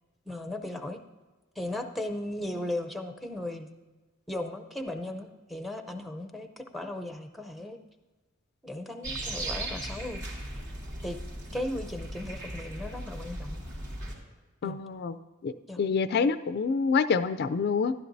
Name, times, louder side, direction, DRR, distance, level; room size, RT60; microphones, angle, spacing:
voice 1, 0.3-1.0 1.6-3.7 4.3-7.8 8.6-10.3 11.0-11.2 11.5-13.6 14.6-14.8 15.7-15.8, left 1 dB, ahead, 7 dB, 0.6 m, -36 dB
sound 1, 9.0-14.1, right 1 dB, 60° right, 2.8 m, -37 dB
voice 2, 14.6-15.2 15.4-17.9, left 5 dB, 50° left, 11 dB, 0.3 m, -27 dB
13.0 x 11.5 x 2.6 m, 1.3 s
head